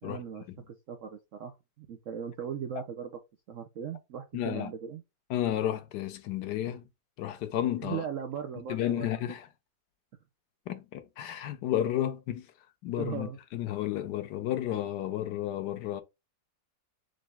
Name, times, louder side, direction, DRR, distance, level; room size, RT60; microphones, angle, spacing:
voice 1, 0.0-3.2 3.5-5.0 7.8-9.1 13.0-13.4, right 8 dB, 70° right, 0.7 m, -38 dB
voice 2, 4.3-4.7 5.3-6.8 7.2-8.0 8.7-9.5 10.7-12.5 12.8-16.0, left 11 dB, 75° left, 1.1 m, -32 dB
3.9 x 3.3 x 3.4 m
omnidirectional pair, 2.0 m